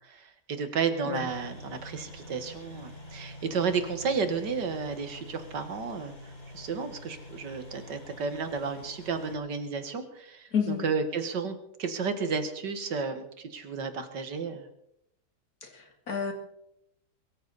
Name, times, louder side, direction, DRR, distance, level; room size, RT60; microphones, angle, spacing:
voice 1, 0.1-6.1 6.5-14.7, right 5 dB, 90° right, 9 dB, 2.3 m, -32 dB
sound 1, 1.2-9.3, left 1 dB, 25° left, 3.5 m, -46 dB
voice 2, 10.5-10.9 15.6-16.3, left 6 dB, 60° left, 4 dB, 2.9 m, -30 dB
23.0 x 14.0 x 4.2 m, 0.77 s
omnidirectional pair, 1.8 m